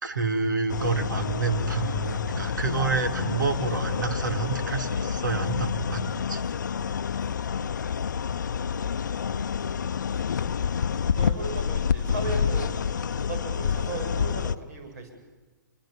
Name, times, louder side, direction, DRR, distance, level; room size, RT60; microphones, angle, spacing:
voice 1, 0.0-6.4 12.3-12.4, right 4 dB, 70° right, 8 dB, 2.6 m, -28 dB
sound 1, 0.7-14.6, left 7 dB, 65° left, 0.7 m, -28 dB
voice 2, 11.0-12.7 13.1-15.1, right 2 dB, 50° right, 5 dB, 7.4 m, -37 dB
26.5 x 25.0 x 7.4 m, 1.2 s
figure-of-eight pair, 125°, 11 cm